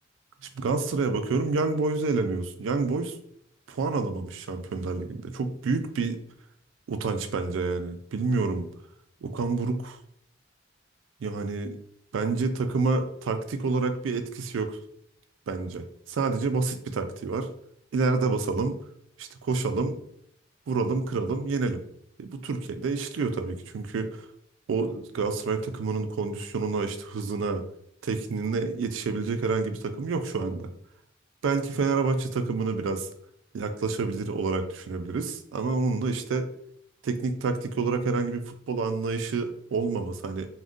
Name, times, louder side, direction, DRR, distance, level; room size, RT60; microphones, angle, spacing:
voice 1, 0.5-3.2 3.7-6.2 6.9-8.7 9.2-10.0 11.2-11.8 12.1-14.8 15.5-17.5 17.9-18.8 19.2-20.0 20.7-21.8 22.2-24.2 24.7-27.6 28.0-30.7 31.4-33.1 33.5-36.5 37.0-40.5, right 4 dB, 80° right, 8 dB, 0.4 m, -28 dB
2.5 x 2.1 x 3.5 m, 0.71 s
head